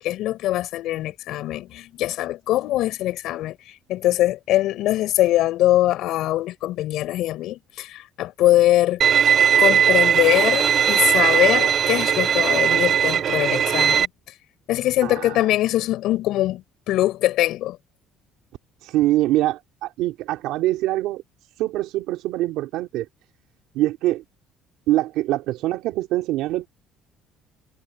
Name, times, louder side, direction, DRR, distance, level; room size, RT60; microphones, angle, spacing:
voice 1, 0.0-3.6 3.9-9.0 9.6-14.1 14.7-17.8, left 15 dB, 65° left, 7.5 m, -22 dB
Bowed string instrument, 9.0-14.1, right 8 dB, 40° right, 0.6 m, -18 dB
voice 2, 15.0-15.4 18.8-21.2 21.6-23.1 23.7-24.2 24.9-26.7, right 16 dB, 80° right, 3.4 m, -24 dB
cardioid pair, 150°, 0 cm